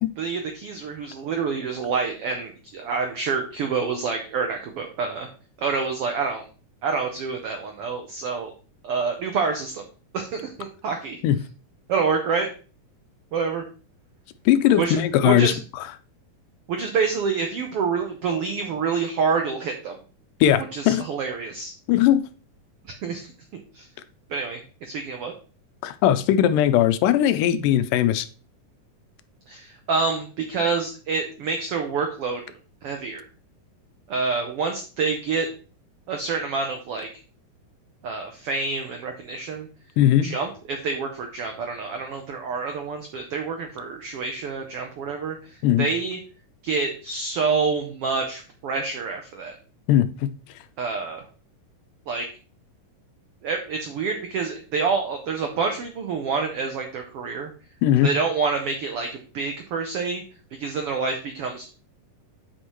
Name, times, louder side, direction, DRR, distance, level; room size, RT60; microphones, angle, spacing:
voice 1, 0.2-5.3 5.6-6.4 6.8-8.5 8.8-9.8 10.1-11.2 11.9-12.5 13.3-13.6 14.8-15.6 16.7-19.9 20.7-21.7 22.9-23.3 23.7-23.8 24.3-25.3 29.5-32.4 32.8-33.2 34.1-35.5 36.1-37.1 38.0-39.7 40.2-45.4 45.8-46.2 46.6-49.6 50.8-51.2 52.1-52.3 53.4-57.5 58.0-60.2 60.6-61.6, right 5 dB, 85° right, 1.2 m, -27 dB
voice 2, 14.5-15.5 20.4-21.0 21.9-22.2 25.8-28.3 40.0-40.3 45.6-45.9 49.9-50.1 57.8-58.1, left 11 dB, 85° left, 2.2 m, -19 dB
8.5 x 5.2 x 3.0 m
omnidirectional pair, 3.8 m